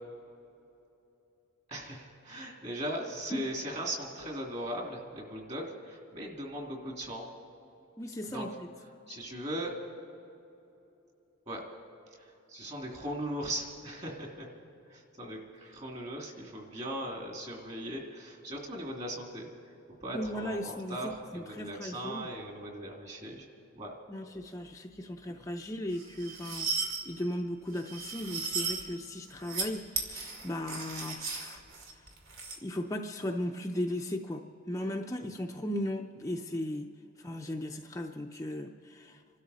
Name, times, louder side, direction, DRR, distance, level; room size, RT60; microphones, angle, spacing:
voice 1, 1.7-7.2 8.3-8.5 9.1-9.7 11.5-11.6 12.2-14.5 14.9-19.5 20.0-23.5 23.7-23.9, right 1 dB, 30° right, 0 dB, 2.5 m, -38 dB
voice 2, 8.0-8.7 20.1-22.3 24.1-31.6 31.9-32.0 32.6-36.9 37.2-39.2, left 1 dB, 15° left, 2 dB, 0.5 m, -37 dB
sound 1, 25.9-27.0 27.7-28.8 29.3-29.7 29.9-32.6, right 4 dB, 75° right, 2.3 m, -36 dB
27.5 x 12.5 x 4.1 m, 2.9 s
head